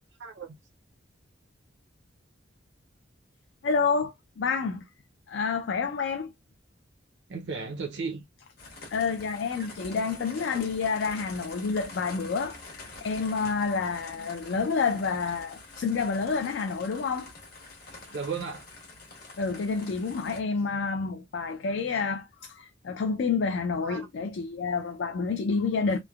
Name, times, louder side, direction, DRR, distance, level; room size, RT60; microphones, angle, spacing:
voice 1, 0.2-0.5 7.3-8.2 9.6-9.7 11.0-11.1 18.1-18.7 23.8-24.1, right 5 dB, 65° right, 0.5 m, -35 dB
voice 2, 3.6-4.8 5.3-6.3 8.9-17.3 19.4-26.0, left 5 dB, 65° left, 0.4 m, -29 dB
sound 1, 8.6-20.4, left 3 dB, 50° left, 1.0 m, -46 dB
3.1 x 2.0 x 2.2 m
head